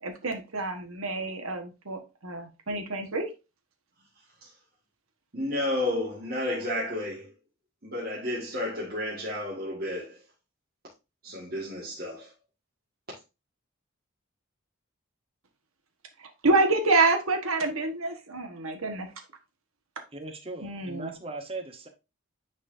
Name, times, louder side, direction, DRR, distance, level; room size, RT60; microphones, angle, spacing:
voice 1, 0.0-3.3 16.2-19.1 20.6-21.1, right 3 dB, 90° right, 1.4 m, -27 dB
voice 2, 5.3-7.3 7.8-10.2 11.2-12.3, left 1 dB, 45° right, 1.8 m, -31 dB
voice 3, 20.1-21.9, right 3 dB, 25° right, 1.0 m, -38 dB
9.7 x 4.2 x 2.6 m
head